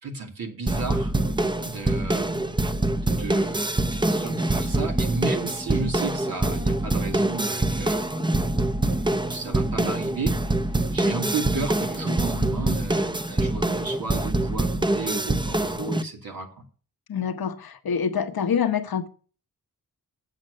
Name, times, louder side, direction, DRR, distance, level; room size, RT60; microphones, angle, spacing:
voice 1, 0.0-1.1 1.6-2.6 3.0-8.2 8.8-10.3 10.9-16.5, right 4 dB, 80° right, 2.6 m, -33 dB
sound 1, 0.7-16.0, right 2 dB, 15° right, 0.7 m, -25 dB
voice 2, 17.1-19.1, left 7 dB, 85° left, 1.1 m, -26 dB
8.0 x 7.5 x 6.4 m
wide cardioid pair, 90°, 35 cm